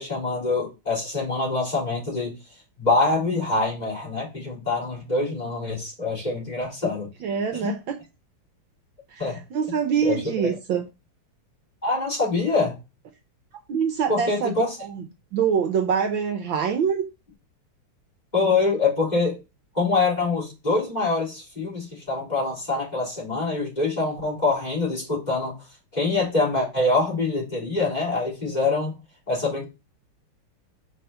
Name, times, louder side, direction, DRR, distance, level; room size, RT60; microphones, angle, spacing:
voice 1, 0.0-2.3 2.8-7.1 7.5-7.7 9.2-9.4 10.0-10.5 11.8-12.8 14.1-14.8 18.3-19.4 19.7-25.5 25.9-29.0 29.3-29.6, left 3 dB, 20° left, 3.2 m, -25 dB
voice 2, 7.2-8.0 9.1-10.8 13.7-15.0 15.3-17.1, right 7 dB, 70° right, 1.4 m, -25 dB
5.4 x 4.2 x 5.6 m
omnidirectional pair, 2.4 m